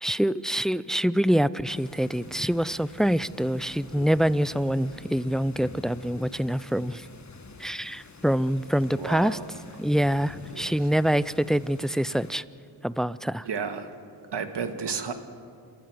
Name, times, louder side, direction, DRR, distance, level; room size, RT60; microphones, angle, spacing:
voice 1, 0.0-7.1 7.6-9.4 9.8-12.4 12.8-13.5, equal, ahead, 18 dB, 0.5 m, -25 dB
sound 1, 1.7-12.4, left 3 dB, 40° left, 1.9 m, -47 dB
voice 2, 9.0-9.5 10.5-10.9 13.4-13.9 14.3-15.1, right 6 dB, 65° right, 8 dB, 1.9 m, -32 dB
28.5 x 13.5 x 8.0 m, 2.3 s
cardioid pair, 55°, 45 cm